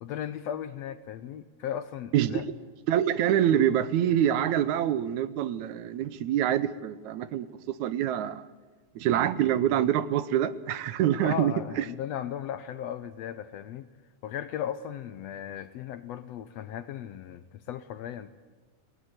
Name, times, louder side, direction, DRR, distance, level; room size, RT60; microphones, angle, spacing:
voice 1, 0.0-2.4 11.1-13.9 14.2-18.3, left 9 dB, 75° left, 1.6 m, -36 dB
voice 2, 2.1-2.4 2.9-8.5 9.0-11.9, right 10 dB, 75° right, 2.1 m, -26 dB
19.5 x 18.5 x 8.1 m
omnidirectional pair, 3.6 m